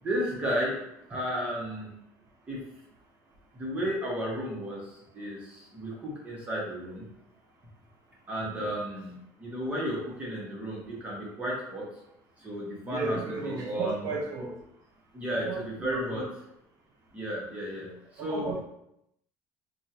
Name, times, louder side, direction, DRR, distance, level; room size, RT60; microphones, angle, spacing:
voice 1, 0.0-0.8 1.1-1.9 2.5-2.6 3.5-7.0 8.3-11.9 12.4-14.1 15.1-16.3 17.1-18.5, equal, 20° right, -5 dB, 1.0 m, -33 dB
voice 2, 12.8-14.5 15.5-16.2 18.3-18.6, right 3 dB, 60° right, -1 dB, 1.0 m, -34 dB
3.4 x 2.3 x 2.8 m, 0.79 s
cardioid pair, 130°, 7 cm